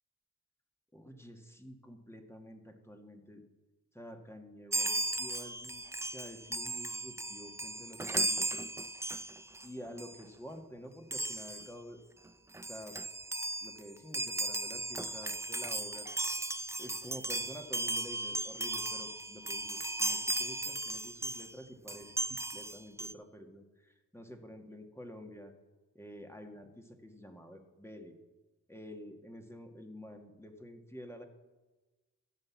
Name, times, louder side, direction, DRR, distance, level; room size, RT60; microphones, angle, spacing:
voice 1, 0.9-3.4 3.9-5.8 6.1-8.7 9.6-12.0 12.6-13.0 13.6-16.1 16.8-25.5 25.9-28.2 28.7-31.3, equal, 5° left, 4 dB, 1.8 m, -49 dB
Chime, 4.7-9.7 10.0-10.2 11.1-11.7 12.3-12.4 12.5-21.5 21.9-23.1, right 2 dB, 10° right, 0.4 m, -36 dB
14.0 x 5.4 x 7.3 m, 1.2 s
supercardioid pair, 40°, 35 cm